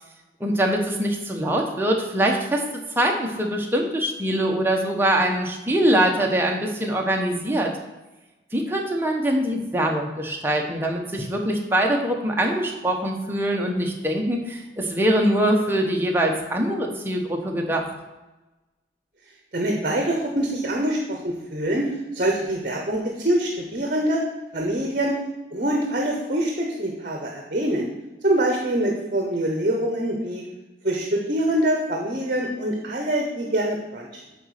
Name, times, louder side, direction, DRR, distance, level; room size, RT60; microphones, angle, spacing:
voice 1, 0.4-2.6 3.0-7.7 8.5-17.9, right 1 dB, 10° right, 1 dB, 1.0 m, -23 dB
voice 2, 19.5-24.2 24.5-25.2 25.5-27.9 28.2-30.5 30.8-34.2, right 1 dB, 45° right, 1 dB, 1.0 m, -24 dB
9.0 x 4.1 x 6.5 m, 1.1 s
head